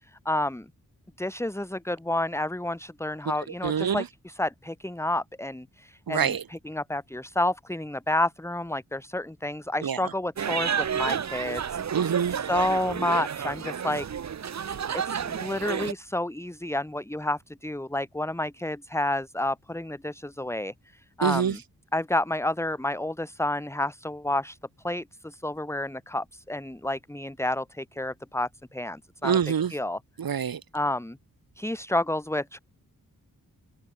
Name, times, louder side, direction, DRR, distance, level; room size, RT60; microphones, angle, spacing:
voice 1, 0.1-0.6 1.2-11.8 12.3-14.1 15.1-20.7 21.2-21.6 21.9-24.6 24.8-29.4 29.7-30.0 30.7-31.2 31.6-32.6, left 1 dB, 5° left, 3.4 m, -30 dB
voice 2, 3.6-4.1 6.1-6.4 9.8-10.0 11.9-12.4 21.2-21.6 29.2-29.7 30.2-30.6, right 7 dB, 80° right, 3.0 m, -25 dB
sound 1, 10.4-15.9, right 7 dB, 50° right, 0.9 m, -30 dB
wide cardioid pair, 150°, 35 cm